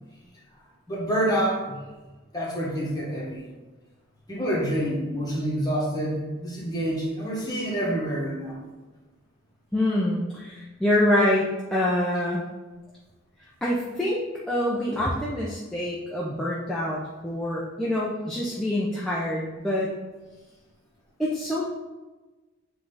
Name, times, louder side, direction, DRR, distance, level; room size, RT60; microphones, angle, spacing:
voice 1, 0.9-1.8 2.3-3.5 4.3-8.5, right 1 dB, 20° left, -5 dB, 1.5 m, -27 dB
voice 2, 9.7-12.4 13.6-19.9 21.2-21.7, left 1 dB, 5° left, -7 dB, 0.6 m, -26 dB
7.3 x 3.4 x 4.0 m, 1.2 s
head